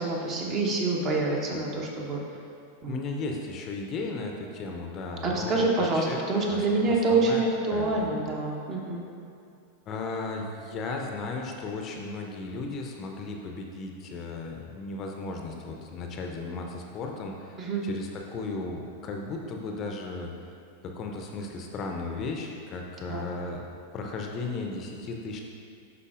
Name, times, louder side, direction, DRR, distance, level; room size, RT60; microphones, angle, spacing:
voice 1, 0.0-2.2 2.8-3.2 5.2-9.0 17.6-17.9 23.1-23.2, right 3 dB, 30° right, -1 dB, 0.9 m, -26 dB
voice 2, 2.9-6.2 6.5-6.6 6.8-7.4 7.7-8.1 9.9-20.3 20.9-23.6 23.9-25.4, left 3 dB, 30° left, 1 dB, 0.6 m, -35 dB
11.0 x 3.9 x 2.5 m, 2.5 s
figure-of-eight pair, 90°, 0 cm